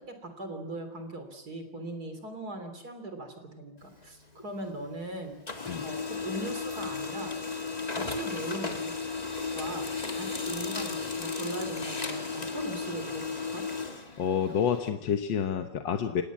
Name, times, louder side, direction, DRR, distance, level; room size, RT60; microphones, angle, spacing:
voice 1, 0.0-5.4 5.8-7.3 7.9-8.9 9.6-13.7, right 2 dB, 55° right, 7 dB, 3.9 m, -39 dB
Printer, 3.8-5.0 5.3-14.9, left 4 dB, 20° left, 1.9 m, -35 dB
voice 2, 14.2-16.2, left 7 dB, 90° left, 6 dB, 1.9 m, -28 dB
28.5 x 18.0 x 7.3 m, 0.93 s
omnidirectional pair, 2.0 m